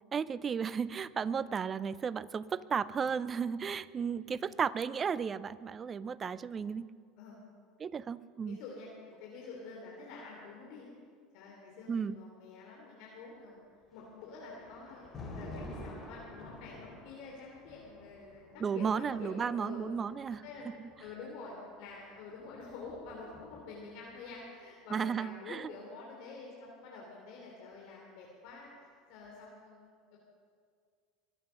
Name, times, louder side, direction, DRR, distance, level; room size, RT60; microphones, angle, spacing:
voice 1, 0.1-6.9 7.8-8.6 11.9-12.2 18.6-20.4 24.9-25.7, right 6 dB, 30° right, 18 dB, 0.5 m, -34 dB
voice 2, 8.4-10.9 11.3-13.6 13.9-18.9 19.2-19.9 20.4-30.2, left 4 dB, 65° left, -3 dB, 3.1 m, -48 dB
Thunder, 13.9-21.1 22.2-23.9, left 1 dB, 35° left, 3.9 m, -49 dB
23.5 x 8.3 x 6.4 m, 2.1 s
hypercardioid pair, 90°, 0 cm